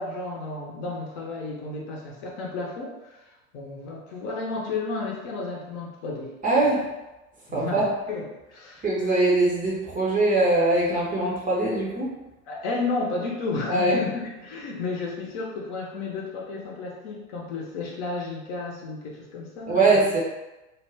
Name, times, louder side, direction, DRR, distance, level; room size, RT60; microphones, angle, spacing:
voice 1, 0.0-6.3 7.5-8.2 8.5-8.9 12.5-20.0, left 3 dB, 45° left, -2 dB, 0.7 m, -32 dB
voice 2, 6.4-6.9 7.5-7.9 8.8-12.1 13.7-14.0 19.7-20.2, right 2 dB, 20° right, -5 dB, 0.6 m, -22 dB
2.4 x 2.1 x 3.3 m, 1.0 s
figure-of-eight pair, 85°, 42 cm